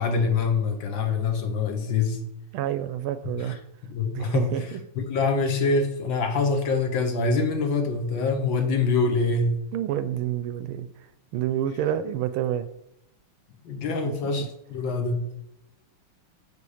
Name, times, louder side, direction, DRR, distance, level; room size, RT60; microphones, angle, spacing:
voice 1, 0.0-2.2 3.4-3.5 3.9-4.5 5.0-9.6 13.7-15.2, left 4 dB, 65° left, 5 dB, 1.7 m, -25 dB
voice 2, 2.5-3.5 4.1-4.8 9.7-10.9 11.3-12.7 14.0-14.1, right 11 dB, 75° right, 12 dB, 1.4 m, -28 dB
6.9 x 6.9 x 4.9 m, 0.81 s
omnidirectional pair, 2.4 m